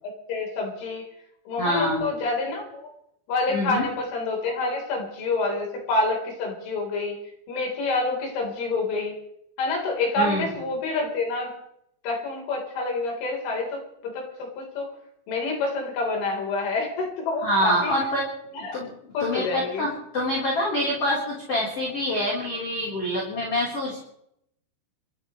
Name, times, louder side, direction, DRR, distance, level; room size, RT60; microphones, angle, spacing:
voice 1, 0.0-1.0 1.5-2.9 3.3-7.2 7.5-9.2 9.6-11.5 12.0-14.9 15.3-18.0 18.5-18.8 19.1-19.9, left 3 dB, 85° left, 0 dB, 6.4 m, -27 dB
voice 2, 1.6-2.1 3.5-3.8 10.2-10.4 17.4-18.3 18.7-18.9 19.2-24.0, equal, 35° left, -5 dB, 4.4 m, -26 dB
29.5 x 14.0 x 3.2 m, 0.74 s
omnidirectional pair, 5.4 m